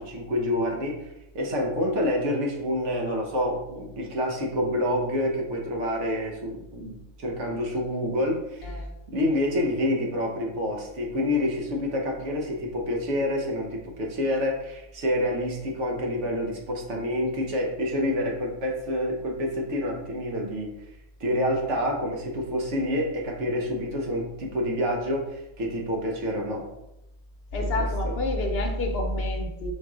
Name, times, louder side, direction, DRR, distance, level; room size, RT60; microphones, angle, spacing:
voice 1, 0.0-8.8 9.1-20.8 21.2-26.7 27.8-28.2, left 1 dB, 75° right, 0 dB, 1.2 m, -28 dB
voice 2, 27.5-29.7, left 1 dB, 60° left, 3 dB, 0.8 m, -27 dB
4.6 x 4.1 x 2.4 m, 0.88 s
omnidirectional pair, 1.3 m